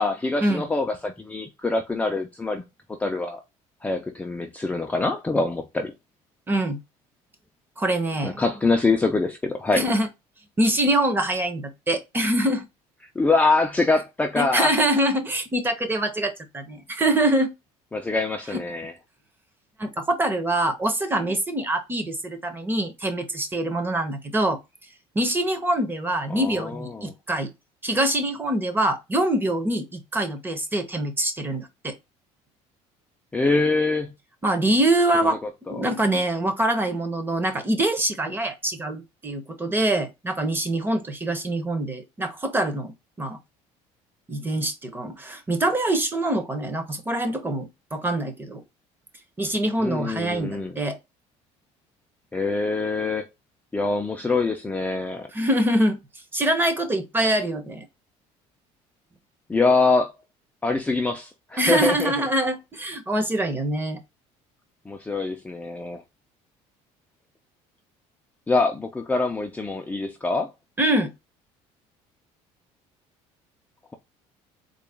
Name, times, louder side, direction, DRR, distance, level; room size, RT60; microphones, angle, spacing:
voice 1, 0.0-2.6 2.9-3.4 3.8-5.9 8.2-9.9 13.2-14.8 17.9-18.9 26.3-27.1 33.3-34.1 35.2-35.3 35.7-35.9 49.8-50.8 52.3-53.3 53.7-55.3 59.5-60.1 60.6-62.1 64.9-66.0 68.5-70.5, left 3 dB, 10° left, 0.5 m, -24 dB
voice 2, 6.5-6.8 7.8-8.4 9.7-10.1 10.6-12.7 14.4-17.5 19.8-24.6 25.1-27.5 27.8-31.9 34.4-35.4 35.7-43.4 44.3-48.6 49.4-51.0 55.3-56.0 56.3-57.9 61.6-64.0 70.8-71.1, right 1 dB, 15° right, 0.8 m, -24 dB
3.9 x 2.3 x 3.4 m
cardioid pair, 130°, 13 cm